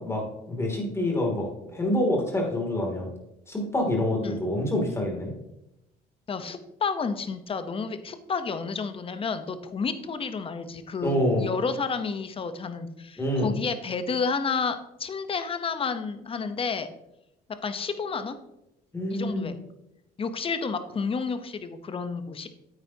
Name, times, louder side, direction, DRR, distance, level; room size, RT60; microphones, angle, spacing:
voice 1, 0.0-3.1 3.5-5.3 11.0-11.5 13.2-13.6 18.9-19.5, left 1 dB, 15° left, 0 dB, 2.7 m, -27 dB
voice 2, 6.3-16.9 17.6-18.4 19.1-19.5 20.2-22.5, left 5 dB, 35° left, 10 dB, 0.9 m, -30 dB
9.1 x 8.8 x 2.9 m, 0.85 s
cardioid pair, 110°, 17 cm